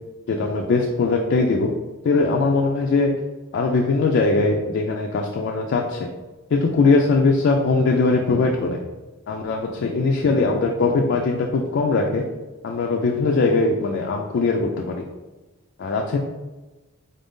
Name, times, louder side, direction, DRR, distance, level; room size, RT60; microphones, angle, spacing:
voice 1, 0.3-1.7 2.0-3.1 3.5-6.1 6.5-8.9 9.3-12.2 12.6-15.0 15.8-16.2, left 3 dB, 55° left, 1 dB, 0.3 m, -20 dB
4.0 x 2.6 x 3.5 m, 1.1 s
head